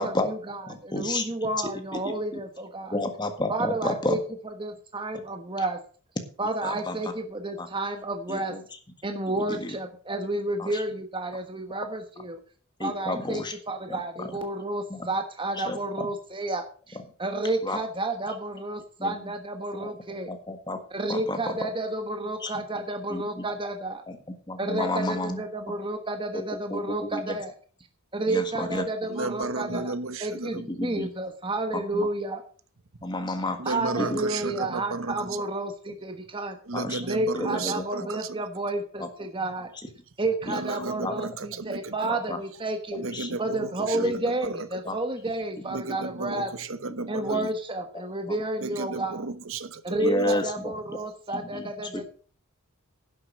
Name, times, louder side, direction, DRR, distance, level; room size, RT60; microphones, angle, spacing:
voice 1, 0.0-3.0 3.5-5.8 6.4-8.5 9.0-12.4 12.8-20.3 20.9-24.0 24.6-27.5 28.1-29.9 30.2-32.4 33.5-36.6 37.0-39.7 40.2-43.0 43.4-46.5 47.1-49.2 49.8-52.1, right 2 dB, 25° right, 1.2 m, -31 dB
voice 2, 0.7-1.3 2.3-2.4 2.9-4.2 6.6-7.0 7.6-7.7 8.3-8.6 9.6-9.7 10.6-10.7 12.8-13.5 13.9-14.3 14.9-15.1 15.6-15.8 17.6-17.8 19.0-19.1 19.8-19.9 20.3-20.8 21.1-21.4 22.4-22.5 23.1-23.4 24.5-25.4 26.3-26.4 26.7-26.8 27.1-27.2 28.3-28.8 29.7-29.8 30.8-31.1 31.9-32.1 33.0-33.6 34.0-34.2 36.7-37.0 37.4-37.8 39.0-39.1 40.5-40.6 41.0-41.1 42.1-42.4 43.1-43.3 43.9-44.1 44.8-45.0 45.9-46.0 47.3-47.5 48.3-48.4 50.0-51.0 51.3-51.6 51.9-52.1, left 2 dB, 20° left, 1.7 m, -31 dB
voice 3, 29.1-30.7 33.6-35.5 36.7-38.4 40.5-41.9 43.0-44.7 45.7-47.5 48.6-50.2, right 3 dB, 65° right, 1.0 m, -33 dB
11.0 x 7.8 x 6.2 m
head